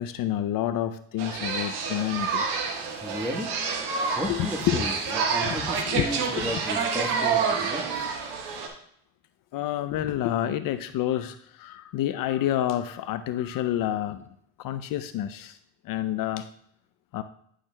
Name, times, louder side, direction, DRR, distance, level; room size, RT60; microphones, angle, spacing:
voice 1, 0.0-2.4 4.3-4.8 5.3-5.5 5.9-6.0 6.4-6.5 9.5-14.2 14.6-15.6 15.8-16.5 17.1-17.2, left 12 dB, 60° left, 11 dB, 0.5 m, -28 dB
sound 1, 1.2-8.7, right 5 dB, 80° right, 1.4 m, -28 dB
voice 2, 2.9-3.5 4.1-8.1, equal, 5° right, 4 dB, 1.3 m, -34 dB
10.0 x 6.3 x 2.2 m, 0.70 s
supercardioid pair, 75°, 38 cm